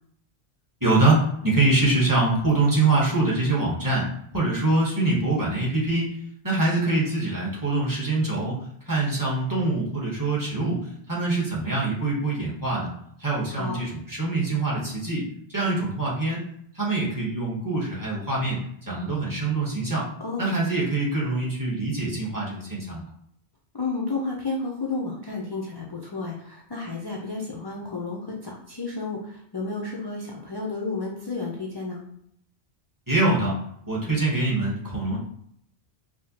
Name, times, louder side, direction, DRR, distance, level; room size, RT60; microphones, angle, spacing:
voice 1, 0.8-4.0 4.3-6.1 6.4-8.6 8.9-12.9 13.2-16.4 16.7-20.1 20.4-23.1 33.1-33.5 33.9-35.2, right 2 dB, 20° right, -5 dB, 0.9 m, -24 dB
voice 2, 20.2-20.6 23.7-32.0, left 3 dB, 40° left, -2 dB, 0.3 m, -32 dB
4.6 x 2.1 x 2.8 m, 0.69 s
omnidirectional pair, 1.1 m